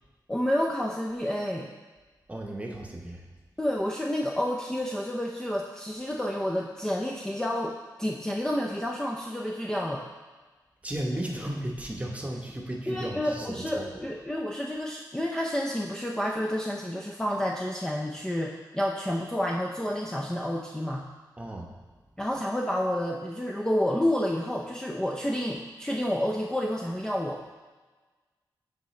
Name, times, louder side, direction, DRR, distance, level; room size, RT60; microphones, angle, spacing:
voice 1, 0.3-1.7 3.6-10.1 12.9-21.0 22.2-27.4, left 1 dB, 10° left, -1 dB, 0.4 m, -29 dB
voice 2, 2.3-3.2 10.8-13.9 21.4-21.7, right 1 dB, 15° right, 0 dB, 0.9 m, -34 dB
9.5 x 3.8 x 3.1 m, 1.3 s
wide cardioid pair, 110°, 8 cm